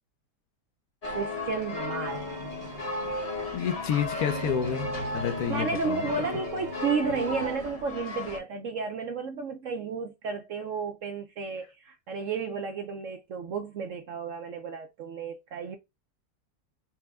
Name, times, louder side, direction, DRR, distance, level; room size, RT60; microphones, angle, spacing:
sound 1, 1.0-8.4, left 2 dB, 30° left, 0.8 m, -35 dB
voice 1, 1.1-2.2 5.5-15.8, right 5 dB, 70° right, 0.8 m, -32 dB
sound 2, 2.1-7.6, right 2 dB, 85° right, 1.6 m, -41 dB
voice 2, 3.5-6.1, left 8 dB, 70° left, 1.1 m, -29 dB
4.4 x 2.2 x 3.5 m
omnidirectional pair, 1.8 m